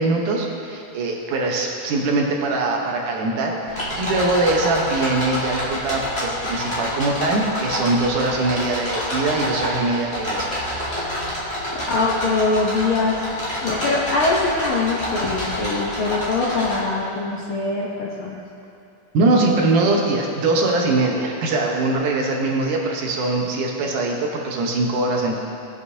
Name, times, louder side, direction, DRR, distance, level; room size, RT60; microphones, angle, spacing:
voice 1, 0.0-10.5 19.1-25.4, right 2 dB, 80° right, 0 dB, 2.7 m, -22 dB
sound 1, 3.7-16.8, left 1 dB, 20° left, 2.5 m, -28 dB
voice 2, 11.7-13.2 13.6-18.4, left 3 dB, 65° left, -5 dB, 1.4 m, -23 dB
18.0 x 8.0 x 2.8 m, 2.6 s
omnidirectional pair, 3.6 m